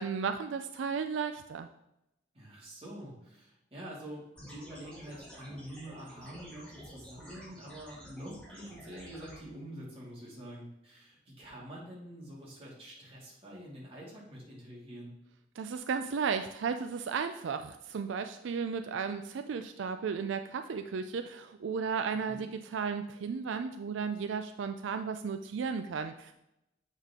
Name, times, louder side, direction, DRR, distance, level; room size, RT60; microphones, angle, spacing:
voice 1, 0.0-1.7 15.6-26.3, right 6 dB, 80° right, 8 dB, 0.4 m, -34 dB
voice 2, 2.3-15.1 22.3-22.5, right 1 dB, 30° right, -5 dB, 2.3 m, -46 dB
sound 1, 4.4-9.4, equal, 5° left, 1.9 m, -51 dB
7.4 x 5.3 x 3.6 m, 0.86 s
head